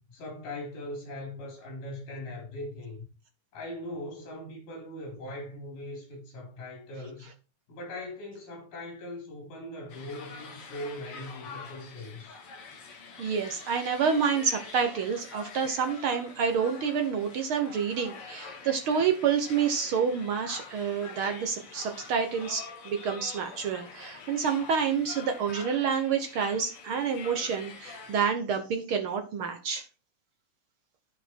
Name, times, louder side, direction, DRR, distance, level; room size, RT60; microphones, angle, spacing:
voice 1, 0.1-3.1 3.5-7.3 7.7-12.4, left 1 dB, 85° left, 5.4 m, -40 dB
sound 1, 9.9-28.3, left 5 dB, 50° left, 2.0 m, -46 dB
voice 2, 13.2-29.9, right 6 dB, 70° right, 1.2 m, -28 dB
13.0 x 5.1 x 4.6 m
omnidirectional pair, 3.7 m